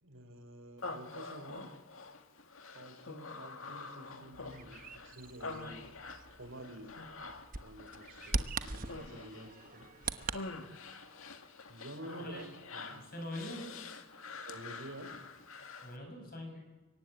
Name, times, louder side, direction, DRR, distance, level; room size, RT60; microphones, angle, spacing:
voice 1, 0.0-1.7 2.7-6.0 6.4-7.0 7.6-9.9 11.7-13.0 14.5-15.1, right 1 dB, 75° right, 7 dB, 4.1 m, -49 dB
Human voice, 0.8-16.0, left 3 dB, 80° left, 2.1 m, -47 dB
Bird vocalization bird call bird song, 4.3-10.4, right 4 dB, 40° right, 1.1 m, -41 dB
voice 2, 12.1-12.5 12.9-13.7 15.8-16.6, left 1 dB, 45° left, 3 dB, 7.2 m, -43 dB
25.5 x 23.0 x 9.3 m, 1.2 s
head